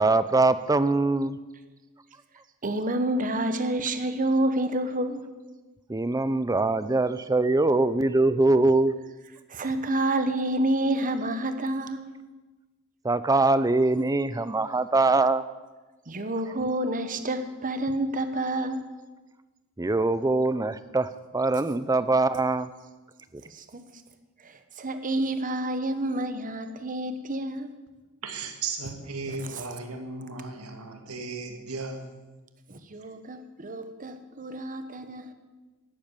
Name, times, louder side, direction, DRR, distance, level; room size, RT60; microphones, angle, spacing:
voice 1, 0.0-1.4 5.9-8.9 13.0-15.4 19.8-22.7, right 2 dB, 15° right, 14 dB, 0.5 m, -23 dB
voice 2, 2.6-5.2 9.5-12.0 16.1-18.8 23.4-23.8 24.4-27.7 29.5-29.6 32.7-35.3, right 1 dB, 40° right, 9 dB, 1.1 m, -29 dB
voice 3, 28.2-32.1, right 4 dB, 85° right, 5 dB, 2.0 m, -36 dB
12.0 x 8.5 x 8.9 m, 1.2 s
head